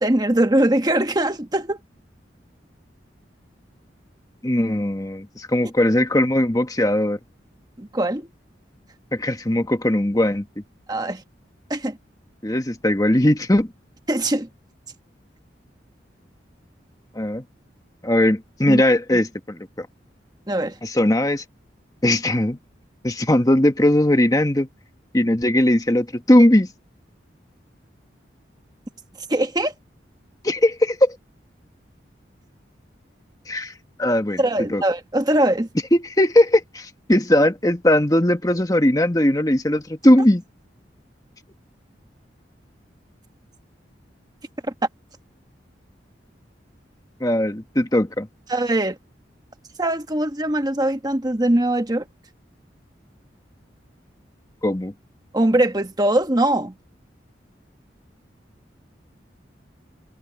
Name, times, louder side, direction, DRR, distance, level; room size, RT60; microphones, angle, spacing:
voice 1, 0.0-1.8 7.8-8.3 10.9-11.2 11.7-12.0 14.1-14.5 18.7-18.8 20.5-20.8 29.3-29.7 34.4-35.7 48.5-49.0 49.8-52.0 55.3-56.7, right 1 dB, 20° right, 1.2 m, -21 dB
voice 2, 4.4-7.2 9.1-10.4 12.4-13.7 17.1-17.4 18.0-19.9 20.8-21.4 22.0-22.6 23.0-24.7 25.1-26.7 30.4-31.2 33.5-33.7 34.0-34.4 34.7-34.8 35.9-40.4 47.2-48.3 54.6-54.9, left 1 dB, 20° left, 1.3 m, -19 dB
head